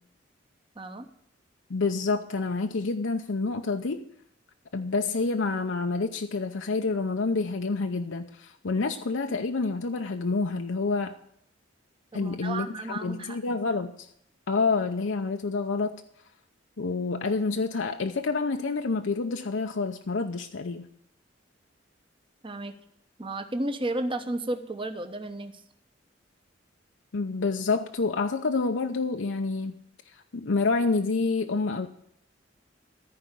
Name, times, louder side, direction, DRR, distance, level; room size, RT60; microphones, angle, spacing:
voice 1, 0.8-1.1 12.1-13.6 22.4-22.7 23.2-25.6, right 2 dB, 25° right, 8 dB, 0.9 m, -33 dB
voice 2, 1.7-4.0 4.7-11.2 12.1-14.1 14.5-16.0 16.8-20.9 27.1-29.7 30.3-31.9, left 3 dB, 75° left, 5 dB, 0.7 m, -28 dB
14.0 x 4.8 x 8.2 m, 0.69 s
head